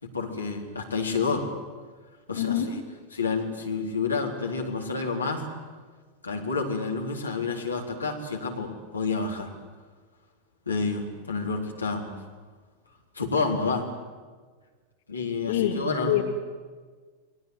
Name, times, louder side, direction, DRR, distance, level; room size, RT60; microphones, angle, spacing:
voice 1, 0.0-1.5 2.3-2.8 3.1-5.4 6.2-9.5 10.7-12.1 13.1-13.9 15.1-16.2, left 4 dB, 80° left, 1 dB, 3.9 m, -29 dB
voice 2, 2.3-2.7 15.5-15.8 16.1-16.2, left 12 dB, 55° left, 1 dB, 2.9 m, -24 dB
29.5 x 22.0 x 8.3 m, 1.5 s
figure-of-eight pair, 90°, 0 cm